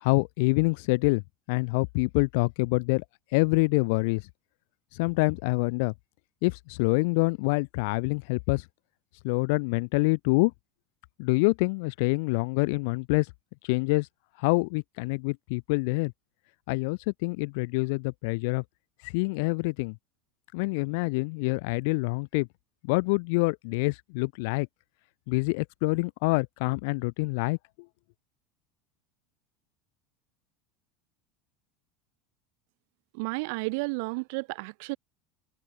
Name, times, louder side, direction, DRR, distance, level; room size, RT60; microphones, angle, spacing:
voice 1, 0.0-1.2 1.5-3.0 3.3-4.3 4.9-5.9 6.4-8.7 9.2-10.5 11.2-13.3 13.6-14.1 14.4-16.1 16.7-18.6 19.0-20.0 20.5-22.5 22.8-24.7 25.3-27.6, left 28 dB, 65° left, 0.5 m, -26 dB
voice 2, 33.1-35.0, right 30 dB, 65° right, 1.0 m, -32 dB
supercardioid pair, 160°, 0 cm